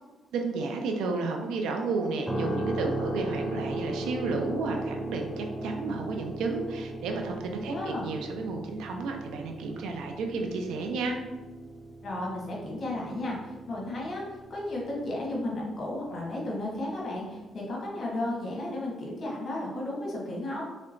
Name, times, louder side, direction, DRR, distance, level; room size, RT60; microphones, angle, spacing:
voice 1, 0.3-11.2, right 3 dB, 85° right, 3 dB, 0.4 m, -32 dB
sound 1, 2.3-16.3, right 1 dB, ahead, 0.4 m, -37 dB
voice 2, 7.6-8.0 12.0-20.7, left 1 dB, 45° left, -3 dB, 1.1 m, -34 dB
3.2 x 2.9 x 2.5 m, 1.2 s
cardioid pair, 90°, 0 cm